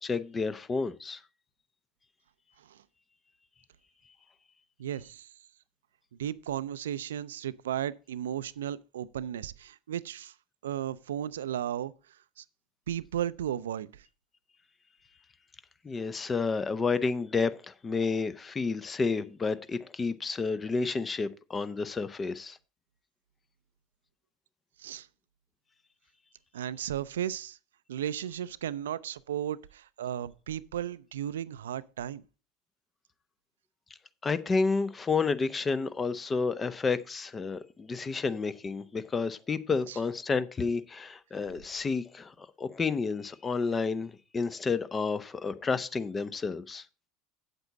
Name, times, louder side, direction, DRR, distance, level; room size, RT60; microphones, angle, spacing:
voice 1, 0.0-1.2 15.8-22.6 34.2-46.8, left 4 dB, 25° left, 0.7 m, -30 dB
voice 2, 4.8-5.3 6.2-10.3 10.6-11.9 12.4-12.5 12.9-14.0 24.8-25.1 26.5-27.6 27.9-32.2 39.9-40.0, right 10 dB, 75° right, 0.4 m, -35 dB
8.2 x 8.1 x 4.0 m
hypercardioid pair, 75°, 0 cm